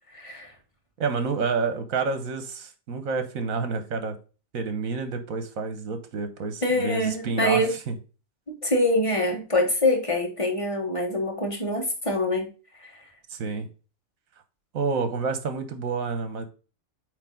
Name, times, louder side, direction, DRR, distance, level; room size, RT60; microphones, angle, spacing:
voice 1, 0.1-0.5 6.6-7.7 8.6-12.5 12.8-12.9, left 1 dB, 25° left, 3 dB, 1.4 m, -25 dB
voice 2, 1.0-4.2 4.5-7.9 13.3-13.7 14.7-16.4, right 4 dB, 75° right, 9 dB, 1.4 m, -29 dB
8.4 x 3.2 x 3.7 m, 0.34 s
omnidirectional pair, 1.5 m